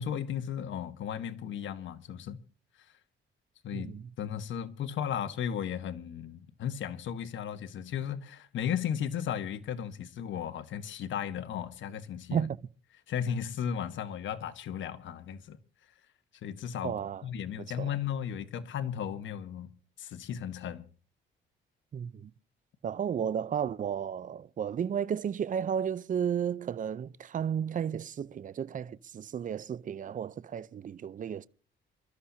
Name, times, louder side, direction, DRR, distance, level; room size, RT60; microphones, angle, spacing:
voice 1, 0.0-2.4 3.6-12.5 13.1-15.6 16.4-19.7 20.0-20.9, left 8 dB, 70° left, 1.3 m, -35 dB
voice 2, 3.7-4.0 12.3-12.6 16.8-17.2 17.8-17.9 21.9-22.3 22.8-31.5, right 8 dB, 40° right, 0.6 m, -33 dB
27.5 x 13.0 x 2.8 m
cardioid pair, 90°, 20 cm